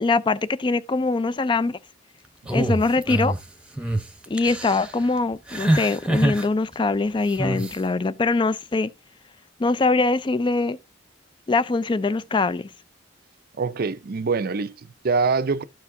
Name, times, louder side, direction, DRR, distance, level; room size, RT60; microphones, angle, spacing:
voice 1, 0.0-1.8 2.5-3.4 4.3-8.9 9.6-10.8 11.5-12.7, left 3 dB, 25° left, 0.4 m, -23 dB
sound 1, 2.5-3.4 3.8-4.0 4.4-4.9 5.5-6.4 7.4-7.7, right 1 dB, 5° right, 0.9 m, -24 dB
voice 2, 13.6-15.6, right 4 dB, 50° right, 0.5 m, -24 dB
13.0 x 4.6 x 2.7 m
head